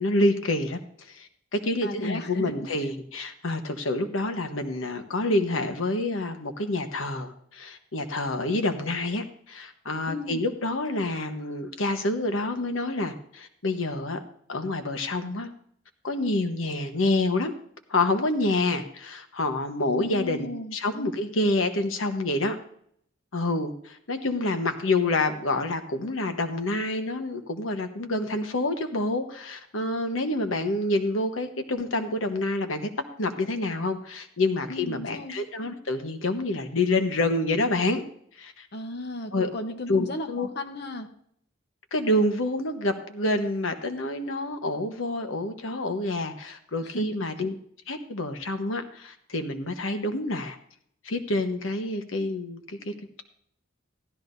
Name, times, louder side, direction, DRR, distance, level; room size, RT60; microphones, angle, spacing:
voice 1, 0.0-14.2 14.5-15.5 16.0-17.5 17.9-22.6 23.3-32.9 33.2-38.0 38.4-38.7 39.3-39.5 39.9-40.5 41.9-47.6 47.9-50.6 51.0-53.2, left 2 dB, 85° left, 7 dB, 1.1 m, -27 dB
voice 2, 1.8-2.5 10.1-10.4 19.9-20.7 34.7-35.4 38.7-41.1 46.8-47.1, left 1 dB, 55° left, 6 dB, 1.0 m, -35 dB
15.5 x 12.5 x 2.7 m, 0.66 s
head